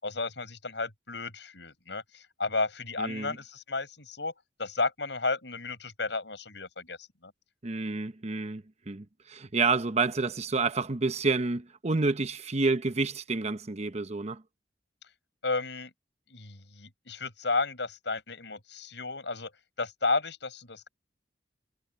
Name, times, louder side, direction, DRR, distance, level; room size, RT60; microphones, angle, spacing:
voice 1, 0.0-4.3 4.6-7.0 7.2-7.3 15.4-15.9 16.3-19.5 19.8-20.9, left 3 dB, 75° left, 6.3 m, -33 dB
voice 2, 3.0-3.4 7.6-14.4, right 3 dB, 40° right, 0.9 m, -29 dB
head